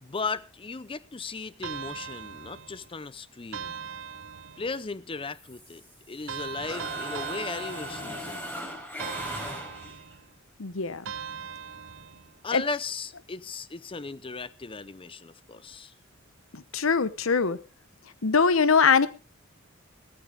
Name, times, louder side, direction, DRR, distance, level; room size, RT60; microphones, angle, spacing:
voice 1, 0.0-3.8 4.6-5.8 6.1-8.5 12.4-15.9, left 4 dB, 25° left, 0.6 m, -36 dB
sound 1, 1.6-2.9 3.5-4.8 6.3-8.5 9.0-10.3 11.1-12.4, right 7 dB, 65° right, 0.8 m, -39 dB
Mechanisms, 5.4-6.3 6.6-10.1, equal, 10° left, 4.4 m, -38 dB
voice 2, 10.6-11.1 12.5-12.6 16.5-17.6 18.2-19.1, left 5 dB, 80° left, 0.9 m, -22 dB
17.0 x 14.5 x 3.5 m
head